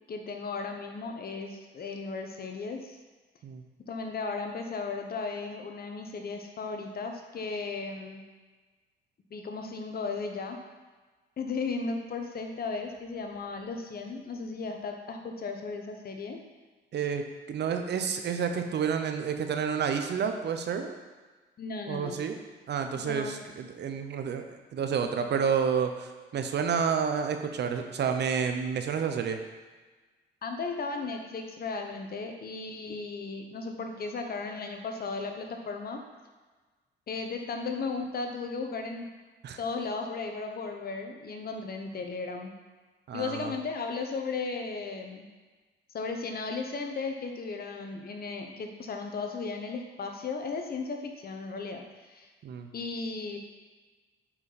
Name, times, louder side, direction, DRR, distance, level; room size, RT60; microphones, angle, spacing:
voice 1, 0.1-3.0 3.9-8.2 9.3-10.6 11.4-16.4 21.6-22.2 22.9-23.5 30.4-36.0 37.1-39.1 39.6-42.5 43.1-45.3 45.9-52.3 52.7-53.4, left 4 dB, 50° left, 4 dB, 1.1 m, -35 dB
voice 2, 16.9-20.9 21.9-22.4 22.7-24.4 24.7-29.4 39.4-39.6 43.1-43.5 52.4-52.7, right 6 dB, 60° right, 6 dB, 0.8 m, -30 dB
8.7 x 4.7 x 4.1 m, 1.3 s
cardioid pair, 90°, 20 cm